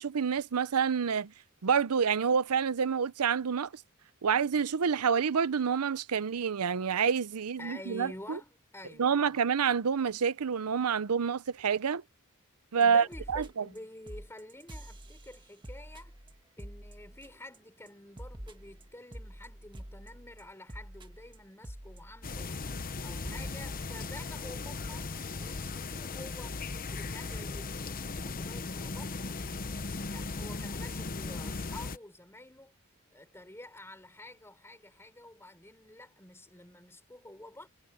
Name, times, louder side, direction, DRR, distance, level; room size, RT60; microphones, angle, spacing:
voice 1, 0.0-1.3 1.6-3.7 4.2-8.4 9.0-12.0 12.7-13.6, right 6 dB, 85° right, 0.6 m, -28 dB
voice 2, 7.6-9.4 12.8-16.1 16.6-22.5 23.0-26.6 26.9-29.4 30.1-32.7 33.1-37.7, left 1 dB, 10° left, 4.7 m, -49 dB
sound 1, 12.8-12.9 13.1-13.8 14.1-17.6 17.9-22.6 22.9-23.0 23.2-23.5, right 1 dB, 20° right, 1.5 m, -47 dB
sound 2, 22.2-32.0, left 3 dB, 40° left, 1.0 m, -37 dB
head